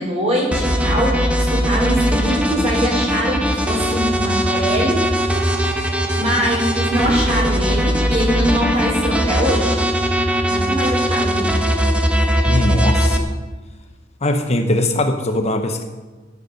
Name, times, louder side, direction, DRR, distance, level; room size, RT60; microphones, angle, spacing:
voice 1, 0.0-5.1 5.8-9.8 10.5-11.5, equal, 35° right, -3 dB, 4.5 m, -22 dB
sound 1, 0.5-13.2, equal, 5° right, 1.1 m, -19 dB
voice 2, 12.5-13.2 14.2-15.8, left 1 dB, 35° left, 5 dB, 0.9 m, -20 dB
10.5 x 9.6 x 6.4 m, 1.3 s
head